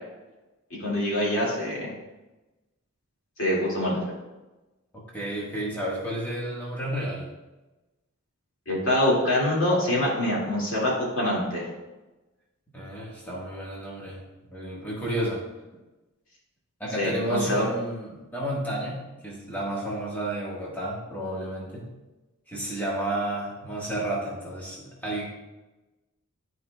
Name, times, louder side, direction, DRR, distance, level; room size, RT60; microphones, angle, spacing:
voice 1, 0.8-1.9 3.4-4.0 8.7-11.7 17.0-17.7, left 1 dB, 65° left, -4 dB, 2.3 m, -25 dB
voice 2, 5.1-7.3 12.7-14.2 14.5-15.4 16.8-21.9 22.5-25.3, right 1 dB, 10° left, -6 dB, 1.5 m, -31 dB
12.0 x 4.7 x 2.3 m, 1.1 s
head